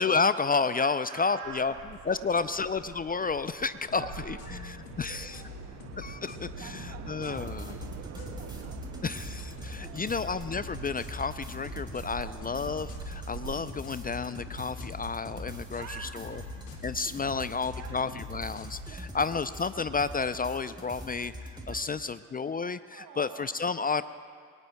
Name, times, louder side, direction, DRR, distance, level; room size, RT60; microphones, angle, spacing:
voice 1, 0.0-1.7 2.1-5.3 6.0-7.7 9.0-15.8 16.1-16.3 16.8-21.3 21.7-24.0, left 4 dB, 20° left, 13 dB, 0.5 m, -31 dB
voice 2, 0.8-2.6 3.4-3.6 3.9-4.6 4.9-5.7 6.2-6.3 6.6-9.0 9.6-10.2 12.1-12.5 15.8-16.8 17.2-17.9 18.8-19.1 21.7-22.4 22.9-23.8, right 6 dB, 80° right, 2 dB, 2.7 m, -48 dB
sound 1, 1.4-13.6, right 11 dB, 35° right, 0.5 m, -46 dB
sound 2, 3.9-18.9, left 3 dB, 80° left, 2.3 m, -45 dB
sound 3, 7.4-21.8, equal, 10° right, 3.8 m, -43 dB
26.0 x 18.5 x 2.3 m, 2.1 s
hypercardioid pair, 55°, 47 cm